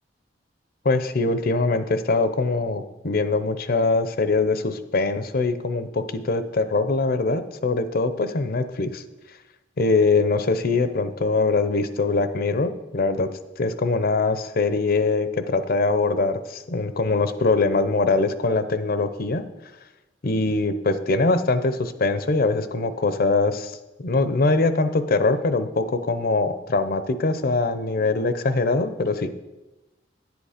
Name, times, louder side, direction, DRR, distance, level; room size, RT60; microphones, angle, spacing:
voice 1, 0.8-9.0 9.8-13.3 13.6-19.4 20.2-29.3, left 3 dB, 55° left, 11 dB, 0.7 m, -22 dB
10.5 x 8.1 x 5.0 m, 1.1 s
head